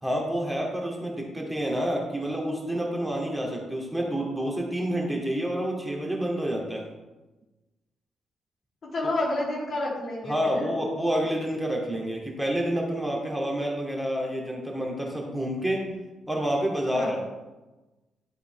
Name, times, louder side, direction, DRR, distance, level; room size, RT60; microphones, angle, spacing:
voice 1, 0.0-6.9 10.3-15.8 16.3-17.2, equal, 5° right, -1 dB, 2.7 m, -28 dB
voice 2, 8.8-10.8 16.9-17.2, left 1 dB, 50° left, -4 dB, 3.1 m, -30 dB
11.5 x 8.1 x 3.4 m, 1.1 s
hypercardioid pair, 40°, 0 cm